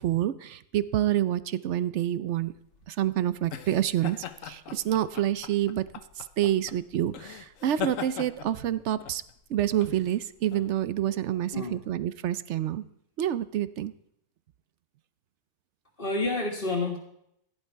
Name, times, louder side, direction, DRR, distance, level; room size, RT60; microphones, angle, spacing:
voice 1, 0.0-2.5 2.9-5.9 6.2-9.2 9.5-12.8 13.2-13.9, right 12 dB, 60° right, 15 dB, 0.8 m, -28 dB
sound 1, 2.4-11.6, left 9 dB, 65° left, 1.2 m, -41 dB
voice 2, 16.0-17.0, left 2 dB, 35° left, -2 dB, 1.9 m, -29 dB
16.0 x 11.0 x 4.6 m, 0.75 s
omnidirectional pair, 1.6 m